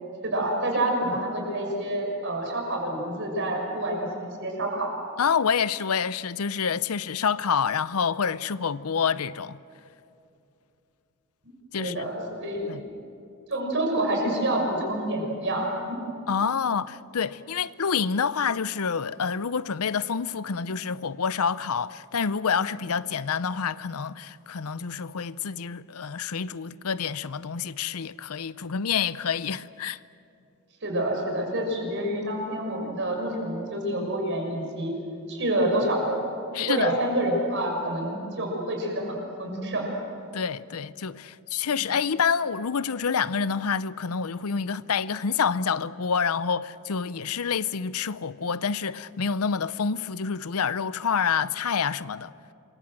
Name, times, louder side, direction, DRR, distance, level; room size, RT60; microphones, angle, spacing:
voice 1, 0.2-4.9 11.8-12.7 13.5-16.0 30.8-34.9 35.3-36.2 36.6-39.9 41.6-41.8, right 1 dB, 55° right, 6.3 m, -28 dB
voice 2, 5.2-9.6 11.7-12.1 12.7-12.8 16.3-30.0 36.5-36.9 40.3-52.3, left 6 dB, 85° left, 0.7 m, -27 dB
27.0 x 23.5 x 7.7 m
head